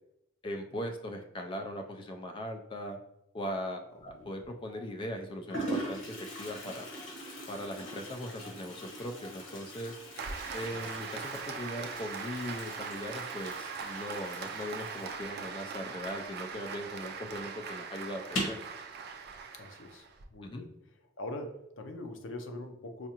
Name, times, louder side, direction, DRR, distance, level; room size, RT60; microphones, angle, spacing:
voice 1, 0.4-3.0 3.3-6.9 7.5-10.0 10.5-18.6 20.4-20.7, equal, 25° left, 4 dB, 0.3 m, -39 dB
Toilet flush, 4.0-4.5 5.2-5.3 5.5-16.8 17.0-17.1 17.4-17.5 18.2-18.7, right 1 dB, 85° left, 1.1 m, -41 dB
sound 1, 4.7-5.4 5.9-6.1 6.7-7.6 8.2-9.4 9.7-9.8 10.4-12.8, left 2 dB, 10° right, 0.7 m, -58 dB
Applause, 10.2-20.2, right 5 dB, 55° right, 0.4 m, -41 dB
voice 2, 19.6-20.8 21.2-23.1, left 1 dB, 70° left, 5 dB, 0.6 m, -43 dB
4.5 x 2.4 x 2.8 m, 0.85 s
head